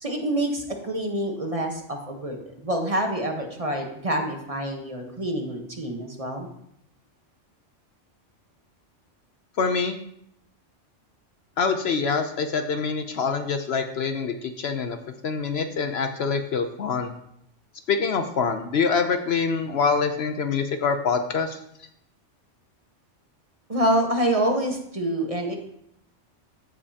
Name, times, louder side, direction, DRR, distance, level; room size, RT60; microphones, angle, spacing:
voice 1, 0.0-6.5 23.7-25.6, right 1 dB, 30° right, 2 dB, 1.1 m, -27 dB
voice 2, 9.6-10.0 11.6-15.0 15.2-17.1 17.9-21.6, left 5 dB, 60° left, 7 dB, 0.8 m, -25 dB
14.5 x 5.2 x 2.8 m, 0.74 s
omnidirectional pair, 1.3 m